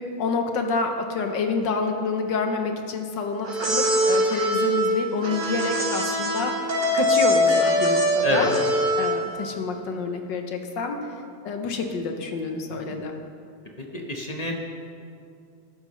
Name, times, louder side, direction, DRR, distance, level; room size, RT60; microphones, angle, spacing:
voice 1, 0.2-8.5 9.0-11.0 11.4-13.1, left 4 dB, 65° left, 4 dB, 1.4 m, -28 dB
sound 1, 3.4-9.3, equal, 30° right, 1.1 m, -22 dB
voice 2, 13.8-14.5, left 2 dB, 35° left, 0 dB, 0.6 m, -27 dB
14.0 x 11.5 x 3.1 m, 2.4 s
omnidirectional pair, 2.2 m